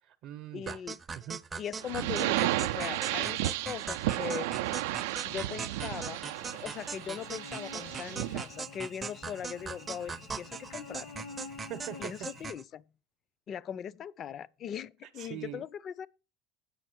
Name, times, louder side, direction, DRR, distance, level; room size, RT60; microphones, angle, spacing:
voice 1, 0.0-0.8 1.1-1.4 11.7-12.1 15.0-15.6, right 12 dB, 55° right, 0.7 m, -42 dB
voice 2, 0.5-1.0 1.6-4.5 5.2-6.2 6.5-11.2 12.0-12.9 13.5-16.1, left 9 dB, 35° left, 0.4 m, -40 dB
sound 1, 0.7-12.6, right 5 dB, 20° right, 0.5 m, -41 dB
sound 2, 1.8-8.5, right 16 dB, 90° right, 0.4 m, -33 dB
Cricket / Buzz, 6.3-12.5, left 4 dB, 75° left, 1.4 m, -49 dB
8.4 x 6.1 x 6.2 m
supercardioid pair, 135°, 0 cm